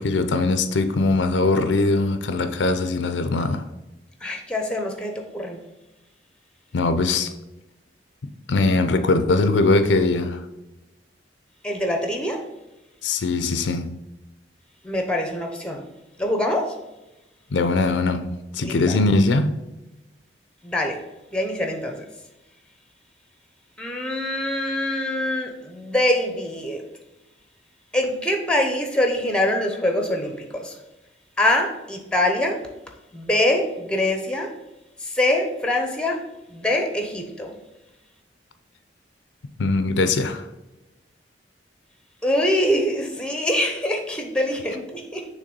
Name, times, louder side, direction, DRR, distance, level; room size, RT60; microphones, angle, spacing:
voice 1, 0.0-3.6 6.7-7.3 8.5-10.4 13.0-13.9 17.5-19.7 39.6-40.4, left 3 dB, 75° left, 0.5 m, -21 dB
voice 2, 4.2-5.6 11.6-12.4 14.8-15.8 16.2-16.7 18.6-19.0 20.6-21.0 21.3-22.0 23.8-26.8 27.9-30.7 31.4-32.6 33.1-34.5 35.0-36.2 36.5-37.5 42.2-45.3, left 1 dB, 5° left, 0.7 m, -24 dB
6.6 x 3.2 x 5.3 m
head